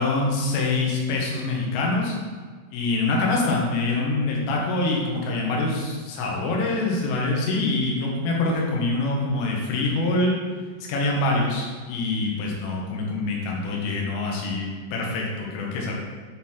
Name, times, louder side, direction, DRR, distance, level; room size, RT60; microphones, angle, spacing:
voice 1, 0.0-2.2 2.7-10.4 10.9-15.9, left 2 dB, 80° left, -2 dB, 3.8 m, -25 dB
11.0 x 4.2 x 4.5 m, 1.5 s
omnidirectional pair, 5.7 m